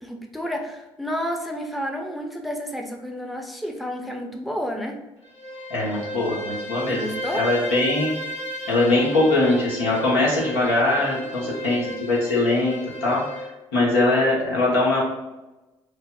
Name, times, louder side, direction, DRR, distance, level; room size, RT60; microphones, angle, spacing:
voice 1, 0.0-5.0 6.9-7.4 11.0-11.9, equal, ahead, 2 dB, 0.5 m, -31 dB
Bowed string instrument, 5.2-13.5, equal, 50° left, 0.7 m, -34 dB
voice 2, 5.7-8.1 8.7-13.5 13.7-15.0, left 2 dB, 85° left, -5 dB, 1.0 m, -22 dB
5.0 x 2.0 x 2.3 m, 1.0 s
hypercardioid pair, 55°, 13 cm